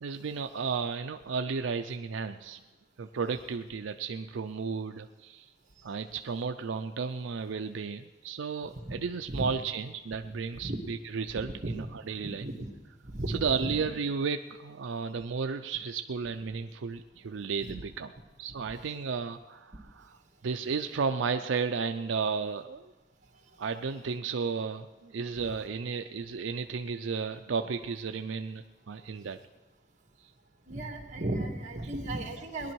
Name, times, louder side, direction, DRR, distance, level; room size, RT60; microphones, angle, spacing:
voice 1, 0.0-2.6 3.0-5.5 5.8-12.5 13.3-18.1 18.4-20.2 20.4-22.9 23.6-29.4, right 5 dB, 85° right, 7 dB, 0.5 m, -33 dB
voice 2, 10.2-10.8 11.6-11.7 12.4-12.7 13.1-13.9 17.7-17.8 30.7-32.7, right 1 dB, 40° right, 3 dB, 1.7 m, -35 dB
18.5 x 11.0 x 4.6 m, 1.1 s
head